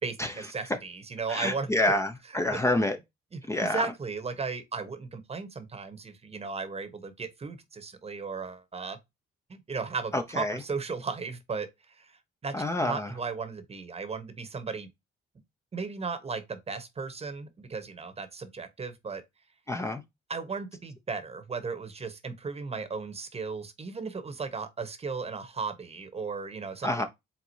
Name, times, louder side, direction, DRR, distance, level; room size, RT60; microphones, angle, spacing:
voice 1, 0.0-2.0 2.3-2.6 3.3-9.0 9.5-12.5 12.8-14.9 15.7-19.2 20.3-27.0, right 4 dB, 30° right, 1.0 m, -36 dB
voice 2, 1.3-3.0 3.5-3.8 10.1-10.6 12.5-13.1 19.7-20.0 26.8-27.0, left 1 dB, 15° left, 0.6 m, -27 dB
4.5 x 3.6 x 2.7 m
cardioid pair, 90°, 20 cm